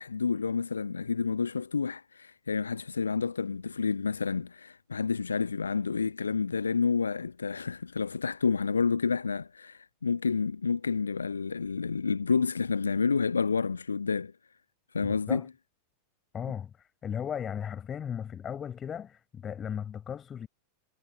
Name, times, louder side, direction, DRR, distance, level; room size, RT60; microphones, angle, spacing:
voice 1, 0.0-14.3 14.9-15.4, left 5 dB, 75° left, 0.6 m, -29 dB
voice 2, 16.3-20.5, left 8 dB, 25° left, 5.5 m, -36 dB
figure-of-eight pair, 90°, 0 cm